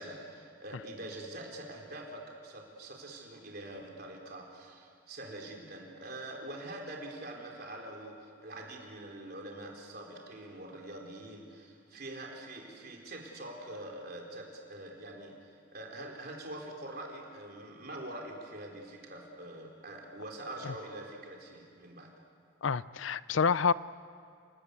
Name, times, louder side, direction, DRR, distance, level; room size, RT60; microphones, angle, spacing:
voice 1, 0.0-22.1, right 1 dB, 50° right, -1 dB, 4.3 m, -44 dB
voice 2, 22.6-23.7, left 5 dB, 75° left, 18 dB, 0.5 m, -27 dB
28.0 x 19.0 x 8.3 m, 2.3 s
head